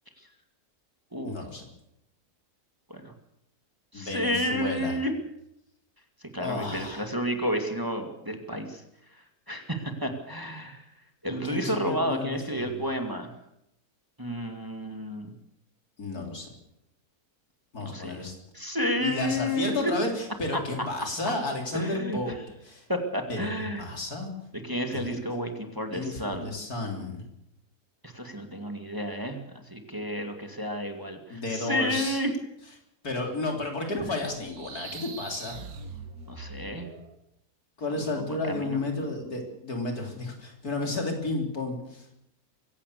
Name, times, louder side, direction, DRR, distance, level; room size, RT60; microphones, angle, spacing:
voice 1, 1.2-1.6 3.9-4.9 6.4-7.1 11.4-12.7 16.0-16.5 17.7-18.3 19.0-22.4 22.6-22.9 23.3-23.5 23.8-24.3 24.9-25.2 25.9-27.2 31.3-32.2 33.0-35.6 37.8-42.1, left 2 dB, 75° left, 2 dB, 4.2 m, -32 dB
voice 2, 3.9-5.1 6.2-8.8 9.1-10.8 11.2-13.3 14.2-15.3 17.8-18.2 18.5-19.9 20.5-20.6 21.7-22.3 22.9-23.9 24.6-26.5 28.0-32.3 36.3-36.9 38.2-38.8, equal, 15° right, 5 dB, 2.2 m, -31 dB
sound 1, 34.3-37.1, right 4 dB, 70° right, 2.0 m, -42 dB
23.5 x 16.5 x 6.8 m, 0.80 s
omnidirectional pair, 1.6 m